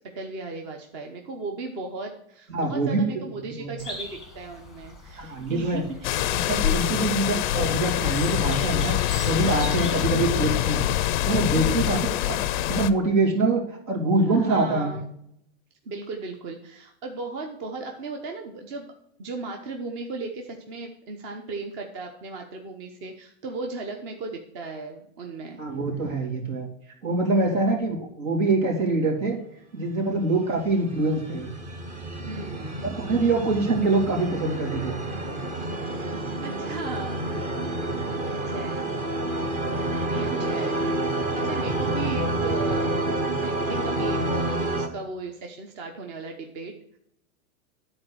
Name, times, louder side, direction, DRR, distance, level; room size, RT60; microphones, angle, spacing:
voice 1, 0.1-6.8 10.0-10.3 11.5-12.1 14.3-15.0 15.8-18.9 19.2-25.6 27.3-27.7 32.3-32.8 36.4-37.2 37.9-38.0 38.3-38.9 40.1-40.8 41.1-43.1 43.4-47.0, right 3 dB, 40° right, 3 dB, 1.1 m, -36 dB
voice 2, 2.5-3.1 3.6-3.7 5.2-5.8 6.3-8.9 9.2-10.8 11.2-12.0 12.3-12.4 12.7-15.0 25.6-26.7 27.0-29.4 29.7-31.5 32.8-35.0 37.8-38.0 40.1-40.5, right 2 dB, 75° right, -1 dB, 3.4 m, -24 dB
sound 1, 3.8-10.6, left 2 dB, ahead, 1.1 m, -42 dB
sound 2, 6.0-12.9, left 13 dB, 40° left, 0.4 m, -25 dB
sound 3, 30.5-44.9, right 2 dB, 15° right, 0.6 m, -29 dB
10.5 x 4.4 x 6.3 m, 0.73 s
supercardioid pair, 155°, 40 cm